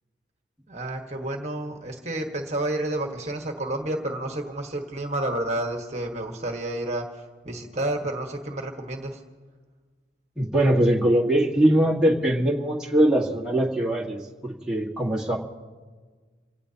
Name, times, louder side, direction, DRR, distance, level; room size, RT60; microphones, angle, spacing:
voice 1, 0.7-9.2, right 1 dB, 35° right, 3 dB, 1.5 m, -30 dB
voice 2, 10.4-15.4, right 1 dB, 5° right, -4 dB, 1.7 m, -22 dB
28.0 x 17.5 x 2.9 m, 1.5 s
head